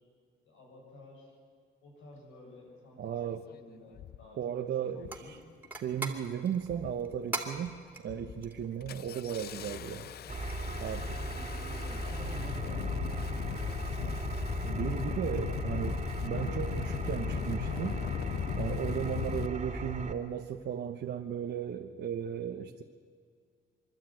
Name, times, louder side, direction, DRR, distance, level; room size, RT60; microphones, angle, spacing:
voice 1, 0.4-1.4 1.8-3.2 3.5-5.5 9.9-10.4 11.1-14.6, left 1 dB, 80° left, -1 dB, 7.7 m, -51 dB
voice 2, 3.0-3.4 4.4-5.4 5.8-7.7 8.0-10.0 10.8-11.1 14.0-14.1 14.6-18.0 18.6-22.8, right 8 dB, 60° right, 4 dB, 1.1 m, -35 dB
Engine starting, 3.1-3.2 3.9-4.3 5.0-5.3 5.6-6.2 6.6-7.2 7.5-7.8 8.1-19.5, left 11 dB, 55° left, 0.4 m, -38 dB
sound 1, 5.0-12.2, right 2 dB, 10° right, 2.8 m, -45 dB
Engine, 10.3-20.1, right 1 dB, 35° right, 2.4 m, -37 dB
25.0 x 12.0 x 9.1 m, 2.1 s
cardioid pair, 90°, 20 cm